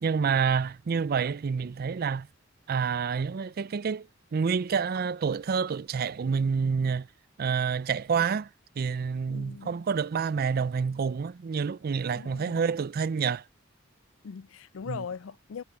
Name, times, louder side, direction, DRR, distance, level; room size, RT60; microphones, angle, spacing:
voice 1, 0.0-2.3 2.7-7.1 7.4-8.5 8.8-13.4 14.9-15.0, right 6 dB, 50° right, 0.4 m, -28 dB
voice 2, 9.3-9.8 12.1-12.6 14.2-15.6, left 6 dB, 85° left, 0.4 m, -40 dB
head